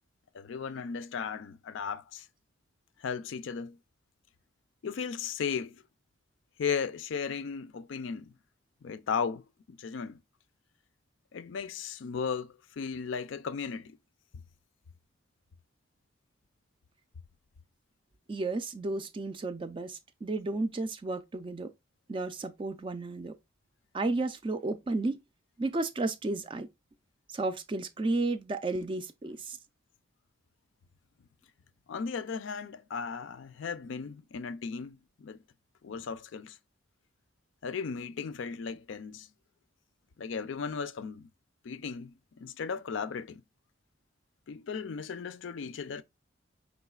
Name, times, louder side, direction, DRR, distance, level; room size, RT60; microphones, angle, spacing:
voice 1, 0.3-2.3 3.0-3.8 4.8-5.8 6.6-8.3 8.8-10.2 11.3-14.0 31.9-35.4 35.8-36.6 37.6-39.3 40.2-41.3 41.6-43.4 44.5-46.0, left 6 dB, 70° left, 0.4 m, -36 dB
voice 2, 18.3-21.7 22.1-23.4 23.9-25.2 25.6-26.7 27.3-29.6, right 2 dB, 25° right, 0.3 m, -32 dB
4.8 x 3.9 x 2.3 m
head